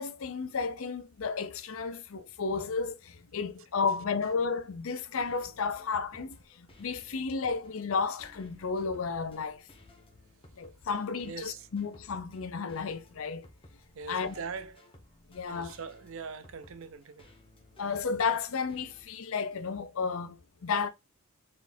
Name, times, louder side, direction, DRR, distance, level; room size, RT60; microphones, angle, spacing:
voice 1, 0.0-9.6 10.6-13.5 14.1-14.3 15.3-15.7 17.8-20.9, left 5 dB, 65° left, 0.5 m, -33 dB
sound 1, 5.0-19.0, left 1 dB, 25° left, 1.0 m, -57 dB
voice 2, 11.2-11.7 13.9-14.9 15.4-17.3, right 5 dB, 60° right, 0.5 m, -42 dB
4.1 x 3.8 x 2.7 m
head